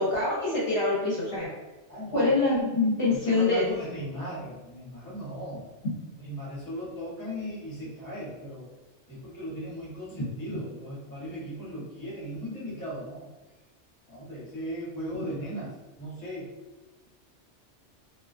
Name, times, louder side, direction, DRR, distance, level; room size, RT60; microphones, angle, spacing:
voice 1, 0.0-1.5 2.1-3.6, left 3 dB, 60° left, -7 dB, 0.8 m, -25 dB
voice 2, 1.9-2.3 3.0-5.7 6.2-8.7 9.1-13.3 14.1-15.7 16.0-16.5, equal, 20° left, -8 dB, 0.9 m, -37 dB
2.3 x 2.2 x 2.4 m, 1.2 s
omnidirectional pair, 1.2 m